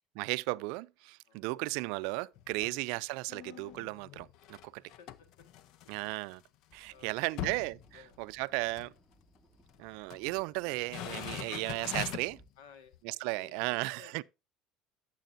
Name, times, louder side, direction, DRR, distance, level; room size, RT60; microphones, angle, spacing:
voice 1, 0.2-4.8 5.9-6.4 6.7-7.8 8.2-8.9 9.8-12.4 13.0-14.2, right 24 dB, 80° right, 0.3 m, -35 dB
voice 2, 1.2-1.6 2.5-2.8 4.7-5.5 6.9-7.6 7.9-8.2 11.5-11.7 12.6-13.0 13.4-14.2, left 6 dB, 90° left, 1.6 m, -58 dB
sound 1, 2.3-2.8 3.3-6.3 6.7-6.8 7.1-8.5 8.7-8.9 9.7-10.4 10.8-12.4 12.9-13.0, left 12 dB, 65° left, 0.6 m, -43 dB
sound 2, 6.7-12.5, equal, 10° left, 2.3 m, -65 dB
10.5 x 7.5 x 2.6 m
supercardioid pair, 115°, 0 cm